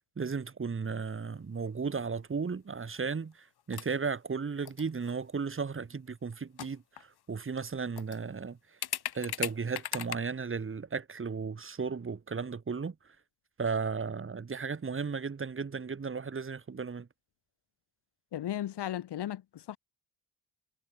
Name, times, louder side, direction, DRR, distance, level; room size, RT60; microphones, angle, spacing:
voice 1, 0.2-8.6 9.1-12.9 13.6-17.1, right 5 dB, 30° right, 4.6 m, -35 dB
sound 1, 1.3-1.7 2.0-2.1 3.0-3.3 3.6-4.0 4.6-5.1 6.3-6.4 6.6-7.2 7.6-7.7 8.0-8.2 8.8-10.2, left 11 dB, 70° left, 2.6 m, -38 dB
voice 2, 18.3-19.8, left 11 dB, 90° left, 3.4 m, -35 dB
wide cardioid pair, 150°, 39 cm